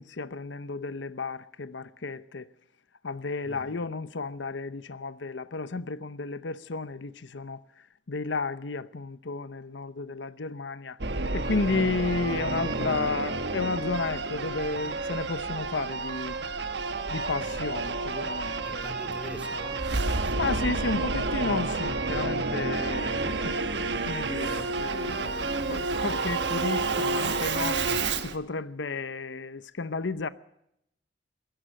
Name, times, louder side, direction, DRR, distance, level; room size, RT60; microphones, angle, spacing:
voice 1, 0.0-2.5 3.0-7.6 8.1-11.0 11.3-16.4 17.1-18.9 19.5-19.7 20.4-23.6 24.1-27.8 28.2-30.3, left 3 dB, 75° left, 0.8 m, -32 dB
voice 2, 3.4-3.9 17.4-17.6 18.6-20.9, equal, 5° right, 2.7 m, -44 dB
Singing / Musical instrument, 11.0-28.4, right 3 dB, 65° right, 1.4 m, -30 dB
21.5 x 16.5 x 7.7 m
head